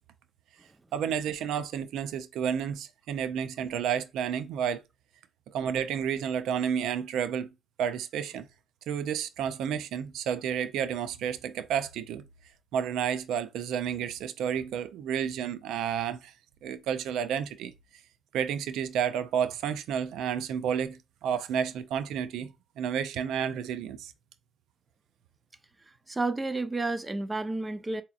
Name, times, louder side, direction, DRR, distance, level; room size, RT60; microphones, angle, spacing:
voice 1, 0.9-4.8 5.5-7.5 7.8-8.4 8.9-12.2 12.7-16.3 16.6-17.7 18.3-22.5 22.8-24.1, right 8 dB, 85° right, 0.4 m, -31 dB
voice 2, 26.1-28.0, right 2 dB, 20° right, 0.6 m, -31 dB
4.8 x 2.8 x 2.4 m
cardioid pair, 90°, 0 cm